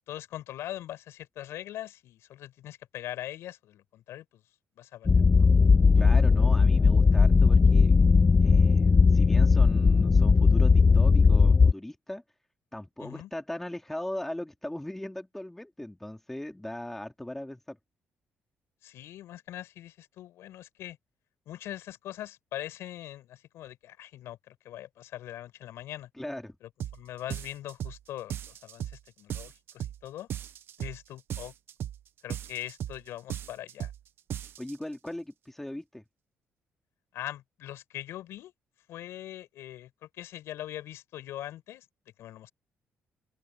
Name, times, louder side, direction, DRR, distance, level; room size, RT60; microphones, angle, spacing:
voice 1, 0.1-4.4 4.8-5.5 13.0-13.3 18.8-21.0 21.5-26.1 26.6-30.3 30.8-31.5 32.2-33.9 37.1-38.5 38.9-41.9 42.2-42.5, left 13 dB, 80° left, 6.3 m, -42 dB
sound 1, 5.1-11.7, left 4 dB, 25° left, 0.4 m, -19 dB
voice 2, 5.9-7.9 8.4-12.2 12.7-17.8 26.2-26.6 34.6-36.0, left 1 dB, 5° left, 3.5 m, -39 dB
sound 2, 26.8-27.0 27.3-28.0 28.3-29.0 29.3-30.0 30.3-31.0 31.3-32.0 32.3-33.0 33.3-34.0 34.3-34.7, right 10 dB, 60° right, 1.0 m, -36 dB
open air
cardioid pair, 120°, 4 cm